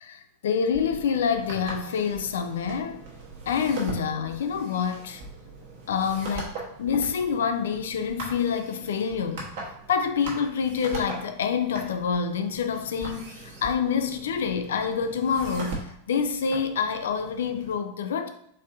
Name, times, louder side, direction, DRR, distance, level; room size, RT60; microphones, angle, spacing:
voice 1, 0.0-3.0 3.5-5.2 5.9-9.5 9.9-18.3, left 6 dB, 60° left, 0.4 m, -27 dB
sound 1, 0.7-17.7, right 2 dB, 50° right, 1.3 m, -40 dB
4.2 x 3.5 x 2.6 m
figure-of-eight pair, 90°, 0 cm